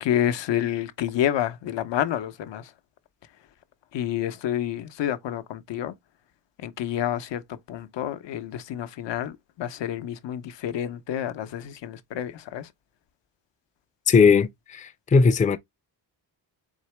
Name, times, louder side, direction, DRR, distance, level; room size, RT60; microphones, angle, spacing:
voice 1, 0.0-2.7 3.9-5.9 6.6-12.7, left 11 dB, 80° left, 0.7 m, -29 dB
voice 2, 14.1-15.6, left 5 dB, 20° left, 0.4 m, -18 dB
4.0 x 3.6 x 3.1 m
cardioid pair, 105°, 43 cm